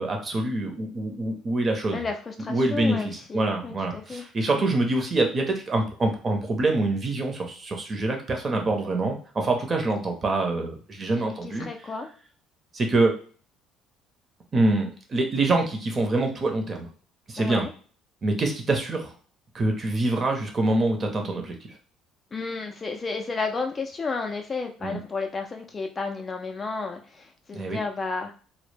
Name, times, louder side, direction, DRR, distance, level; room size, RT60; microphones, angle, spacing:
voice 1, 0.0-2.0 2.5-11.7 12.7-13.1 14.5-16.9 17.3-17.6 18.2-19.1 19.5-21.6 24.8-25.0 27.5-27.8, right 2 dB, 30° right, 3 dB, 0.7 m, -25 dB
voice 2, 1.9-4.2 4.5-4.7 11.1-12.1 17.4-17.7 22.3-28.3, left 4 dB, 30° left, 4 dB, 0.3 m, -32 dB
2.0 x 2.0 x 3.2 m, 0.41 s
cardioid pair, 100°, 0 cm